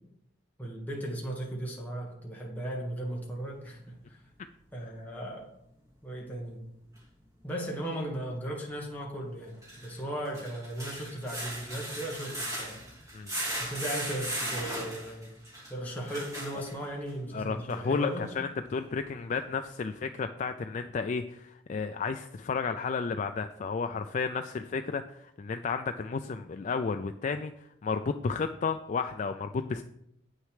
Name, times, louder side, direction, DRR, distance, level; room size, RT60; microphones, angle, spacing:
voice 1, 0.6-4.2 4.7-5.5 6.0-6.6 7.4-9.5 9.8-12.7 13.6-15.4 15.7-18.3, right 1 dB, 10° left, -3 dB, 1.5 m, -36 dB
sound 1, 7.0-7.1 9.5-17.1 17.7-17.8 18.2-18.3, right 1 dB, 15° right, 2.5 m, -37 dB
voice 2, 17.3-18.1 18.4-29.8, left 5 dB, 40° left, 7 dB, 0.3 m, -32 dB
8.6 x 6.5 x 4.8 m, 0.76 s
head